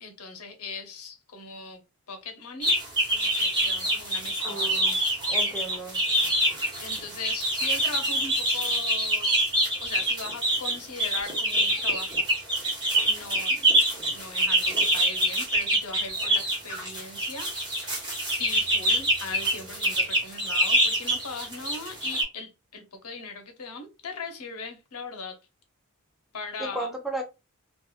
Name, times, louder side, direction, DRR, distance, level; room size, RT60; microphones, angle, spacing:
voice 1, 0.0-1.8 2.1-2.7 3.1-5.0 6.8-9.4 9.8-12.2 13.1-25.4 26.3-26.9, left 4 dB, 85° left, 0.8 m, -39 dB
sound 1, 2.6-22.2, right 1 dB, 20° right, 1.2 m, -25 dB
voice 2, 4.4-5.0 5.3-6.0 26.6-27.2, right 2 dB, ahead, 0.4 m, -34 dB
2.9 x 2.4 x 2.3 m
head